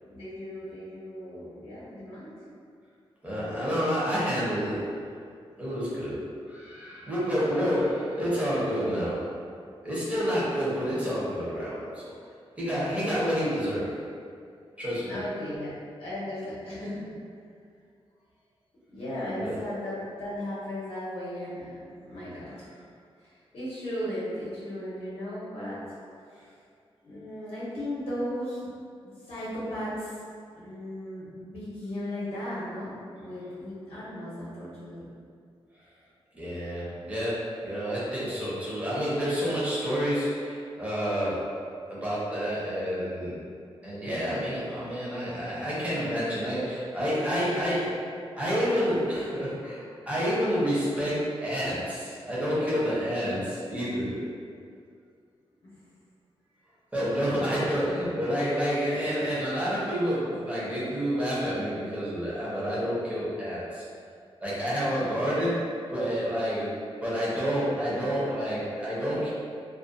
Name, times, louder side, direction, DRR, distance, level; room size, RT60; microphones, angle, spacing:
voice 1, 0.0-2.4 15.0-15.7 16.0-17.1 18.9-22.7 23.2-25.8 27.0-28.7 29.2-30.2 30.5-35.1 55.6-55.7 57.5-58.2 65.0-65.2, left 1 dB, 70° left, -10 dB, 0.7 m, -36 dB
voice 2, 3.2-5.1 5.6-9.3 9.8-12.1 12.6-14.0 14.8-15.2 19.4-19.5 36.3-41.6 41.9-43.4 43.8-48.0 48.4-54.3 56.9-63.8 64.4-69.3, equal, 15° right, -9 dB, 0.7 m, -29 dB
2.3 x 2.1 x 2.5 m, 2.3 s
wide cardioid pair, 165°, 10 cm